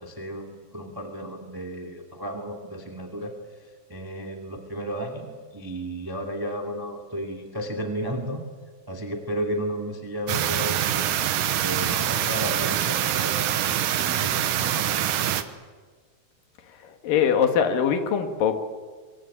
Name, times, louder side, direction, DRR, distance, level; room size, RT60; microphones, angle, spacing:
voice 1, 0.0-3.3 3.6-8.4 8.9-11.2 11.6-15.3, equal, 10° right, 3 dB, 1.8 m, -33 dB
sound 1, 10.3-15.4, right 11 dB, 80° right, 2.7 m, -25 dB
voice 2, 16.7-18.6, left 7 dB, 85° left, 7 dB, 3.4 m, -23 dB
25.0 x 23.5 x 8.7 m, 1.5 s
omnidirectional pair, 3.8 m